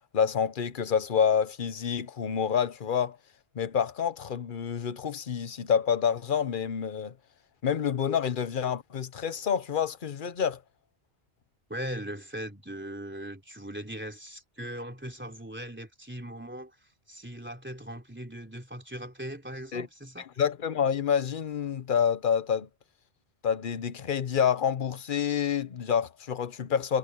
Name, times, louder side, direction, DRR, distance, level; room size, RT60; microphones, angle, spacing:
voice 1, 0.1-3.2 3.5-7.1 7.6-10.6 19.7-19.9 20.4-22.7 23.4-27.0, left 7 dB, 55° left, 1.1 m, -28 dB
voice 2, 11.7-20.3, equal, 10° right, 3.5 m, -39 dB
omnidirectional pair, 1.1 m